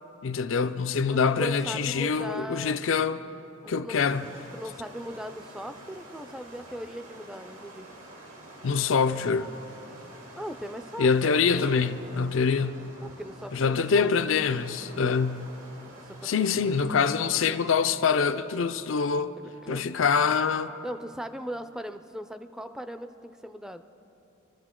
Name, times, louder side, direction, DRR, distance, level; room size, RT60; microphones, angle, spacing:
voice 1, 0.2-3.2 3.7-4.3 8.6-9.5 11.0-12.8 13.5-15.5 16.2-19.3 19.7-20.7, left 5 dB, 70° left, 0.5 m, -25 dB
voice 2, 1.1-2.8 3.6-4.0 4.5-7.9 10.4-11.1 13.0-14.1 16.1-16.7 19.4-19.9 20.8-23.8, equal, 5° right, 0.4 m, -38 dB
sound 1, 4.1-16.9, right 1 dB, 80° right, 2.5 m, -48 dB
24.0 x 13.5 x 3.7 m
head